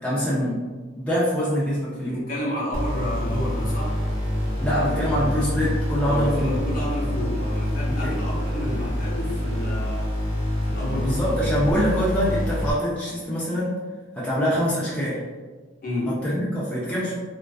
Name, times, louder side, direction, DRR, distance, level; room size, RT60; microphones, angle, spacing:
voice 1, 0.0-0.6 0.9-2.3 4.6-6.6 7.9-8.2 10.9-13.8 14.1-15.2 16.1-17.2, equal, 5° left, -9 dB, 0.4 m, -24 dB
voice 2, 2.0-4.0 6.0-10.1 10.6-11.2 15.8-16.2, left 1 dB, 45° left, -5 dB, 0.7 m, -30 dB
sound 1, 2.7-12.7, equal, 60° right, 1.1 m, -26 dB
2.3 x 2.3 x 2.3 m, 1.4 s
head